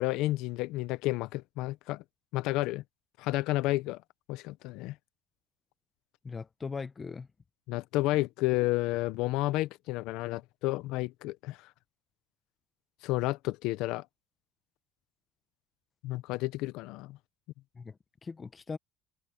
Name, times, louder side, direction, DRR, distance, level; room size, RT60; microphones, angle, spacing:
voice 1, 0.0-2.0 2.3-2.8 3.2-4.0 4.3-4.9 7.7-11.6 13.0-14.0 16.0-17.2, left 18 dB, 65° left, 0.6 m, -31 dB
voice 2, 6.2-7.3 17.7-18.8, left 5 dB, 15° left, 0.7 m, -40 dB
cardioid pair, 175°, 0 cm